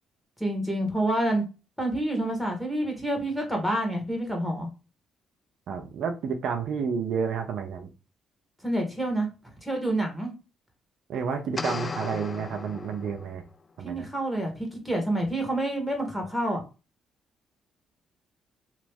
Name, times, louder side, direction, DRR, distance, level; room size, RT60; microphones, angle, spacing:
voice 1, 0.4-1.4 1.8-4.7 8.6-9.3 9.6-10.3 13.8-16.6, right 1 dB, ahead, 1.5 m, -28 dB
voice 2, 5.7-7.9 11.1-13.4 13.8-14.0, right 6 dB, 70° right, 0.5 m, -30 dB
sound 1, 11.6-13.5, left 4 dB, 35° left, 0.3 m, -35 dB
3.0 x 2.5 x 3.4 m
cardioid pair, 75°, 0 cm